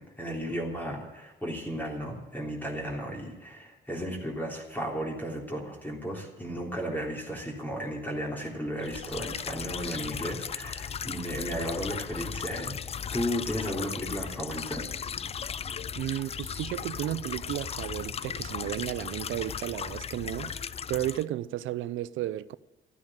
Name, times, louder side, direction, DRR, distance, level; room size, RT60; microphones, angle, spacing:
voice 1, 0.0-12.8 13.1-14.9, equal, 10° left, 3.4 m, -34 dB
sound 1, 8.8-21.2, left 7 dB, 30° left, 0.4 m, -36 dB
voice 2, 16.0-22.6, right 14 dB, 80° right, 0.6 m, -33 dB
14.0 x 9.6 x 8.9 m
cardioid pair, 90°, 20 cm